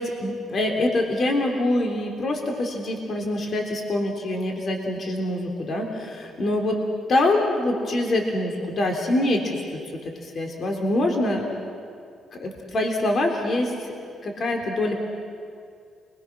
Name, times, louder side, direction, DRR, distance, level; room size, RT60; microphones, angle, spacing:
voice 1, 0.0-6.8 7.1-9.6 10.0-11.4 12.3-14.9, left 1 dB, 50° left, 2 dB, 3.5 m, -25 dB
29.0 x 22.0 x 6.2 m, 2.3 s
cardioid pair, 90°, 0 cm